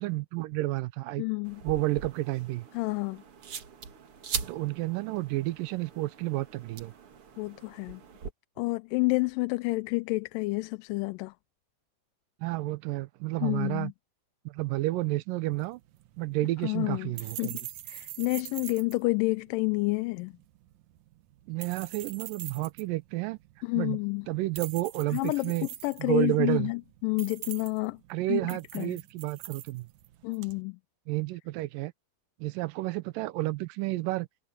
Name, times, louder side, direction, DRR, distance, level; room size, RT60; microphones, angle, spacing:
voice 1, 0.0-1.2 1.6-2.7 4.5-6.9 12.4-13.9 14.5-15.8 16.2-17.6 21.5-23.4 23.7-24.0 24.3-25.7 26.0-26.7 28.1-29.9 31.1-31.9 32.4-34.3, right 18 dB, 85° right, 2.4 m, -31 dB
voice 2, 1.2-1.6 2.7-3.2 7.4-8.0 8.6-11.3 13.4-13.9 16.6-17.1 17.4-17.6 17.9-20.3 23.6-24.3 25.1-28.0 28.3-29.0 30.2-30.8, left 24 dB, 90° left, 2.2 m, -29 dB
sound 1, 1.5-8.3, right 6 dB, 50° right, 2.3 m, -41 dB
sound 2, 15.5-30.6, right 14 dB, 70° right, 1.9 m, -45 dB
omnidirectional pair, 3.8 m